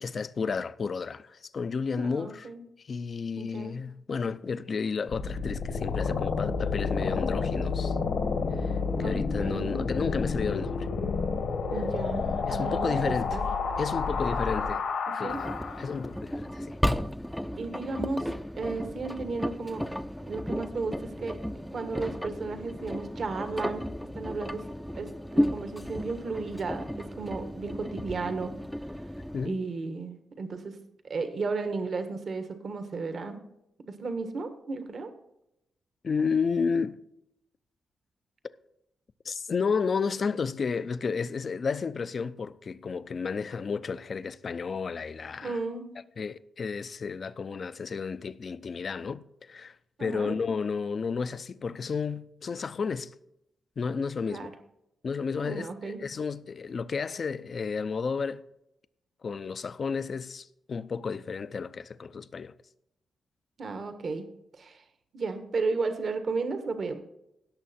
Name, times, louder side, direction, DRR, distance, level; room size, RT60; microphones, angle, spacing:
voice 1, 0.0-2.5 2.9-8.0 8.6-8.7 9.0-10.9 12.4-13.4 13.8-14.8 15.1-15.5 15.8-16.8 29.3-29.6 36.0-37.0 39.2-45.6 46.2-53.1 53.8-54.5 55.0-58.4 59.2-62.5, left 5 dB, 50° left, 0.5 m, -32 dB
voice 2, 2.0-2.6 3.3-3.8 9.0-9.9 11.7-13.4 15.1-15.4 17.6-18.3 18.6-19.9 20.2-23.9 24.1-24.6 25.0-28.5 29.4-30.8 31.0-33.4 33.9-35.1 45.4-45.9 50.0-50.4 54.3-54.5 55.4-56.0 63.6-64.2 64.5-64.8 65.1-67.0, right 4 dB, 55° right, 1.4 m, -34 dB
sound 1, 5.1-16.0, left 5 dB, 80° left, 1.7 m, -30 dB
Engine, 15.3-29.5, equal, ahead, 0.6 m, -34 dB
17.5 x 6.5 x 4.3 m
cardioid pair, 80°, 0 cm